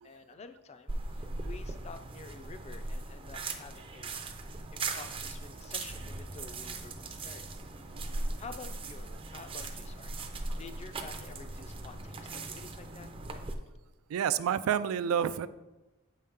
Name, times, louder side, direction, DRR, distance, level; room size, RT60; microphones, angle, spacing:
voice 1, 0.0-7.5 7.9-8.1 8.4-10.2 10.6-13.1, left 4 dB, 30° left, 9 dB, 0.4 m, -50 dB
sound 1, 0.9-13.5, right 2 dB, 25° right, 0.5 m, -39 dB
voice 2, 14.1-15.5, right 8 dB, 80° right, 15 dB, 0.3 m, -30 dB
7.5 x 5.4 x 3.6 m, 1.1 s
head